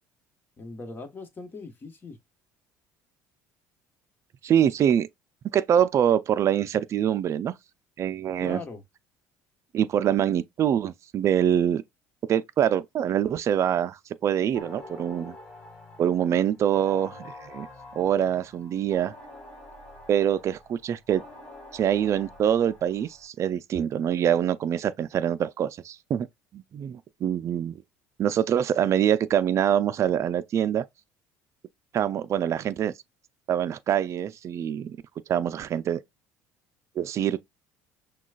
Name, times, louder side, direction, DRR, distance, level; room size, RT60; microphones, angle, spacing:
voice 1, 0.6-2.2 8.4-8.8, left 3 dB, 30° left, 1.4 m, -40 dB
voice 2, 4.4-5.1 5.5-7.5 8.0-8.6 9.7-11.8 12.3-15.4 16.0-17.7 18.0-19.1 20.1-21.2 21.7-26.3 26.5-27.7 28.2-30.8 31.9-32.9 33.5-35.0 35.3-36.0 37.0-37.4, right 9 dB, 45° right, 0.4 m, -24 dB
sound 1, 14.5-23.3, left 2 dB, 15° left, 3.1 m, -46 dB
6.1 x 2.3 x 2.4 m
supercardioid pair, 100°, 7 cm